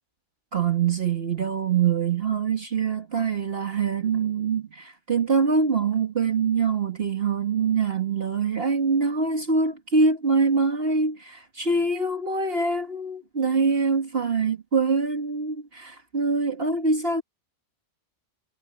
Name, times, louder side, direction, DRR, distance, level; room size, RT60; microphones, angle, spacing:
voice 1, 0.5-17.2, right 4 dB, 50° right, 1.9 m, -24 dB
omnidirectional pair, 1.3 m